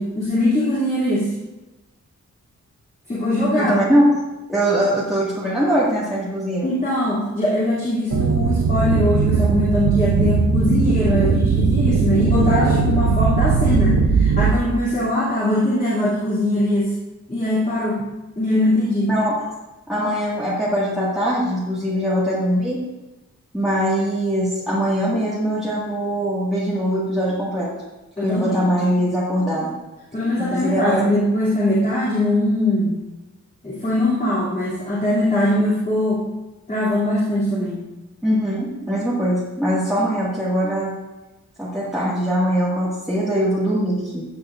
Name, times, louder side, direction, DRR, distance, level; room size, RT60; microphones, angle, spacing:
voice 1, 0.0-1.3 3.1-3.7 6.6-16.9 17.3-18.0 18.4-19.1 28.2-28.6 30.1-33.0 33.6-36.2 36.7-37.8, left 1 dB, 25° left, -9 dB, 3.0 m, -21 dB
voice 2, 3.5-4.0 4.5-6.7 19.1-19.3 19.9-22.8 23.5-27.7 28.2-29.7 30.4-31.0 38.2-40.9 41.6-44.2, equal, ahead, -10 dB, 2.0 m, -21 dB
sound 1, 8.1-14.5, right 5 dB, 90° right, 0.8 m, -18 dB
15.5 x 8.7 x 2.6 m, 1.1 s
wide cardioid pair, 175°, 30 cm